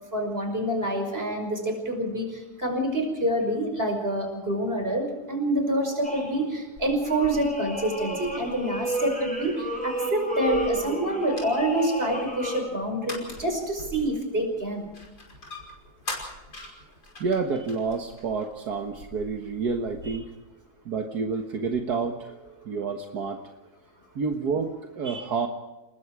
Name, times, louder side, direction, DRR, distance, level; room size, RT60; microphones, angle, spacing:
voice 1, 0.1-14.9 20.1-20.2 25.1-25.2, right 1 dB, 35° right, 4 dB, 5.6 m, -27 dB
sound 1, 6.0-6.6 7.0-12.6, right 2 dB, 5° left, 7.2 m, -31 dB
sound 2, 6.8-20.1, left 1 dB, 85° left, 6.0 m, -44 dB
voice 2, 17.2-20.3 20.9-22.3 22.7-23.4 24.2-25.5, right 4 dB, 75° right, 3 dB, 2.0 m, -29 dB
29.5 x 20.5 x 4.8 m, 1.0 s
omnidirectional pair, 1.7 m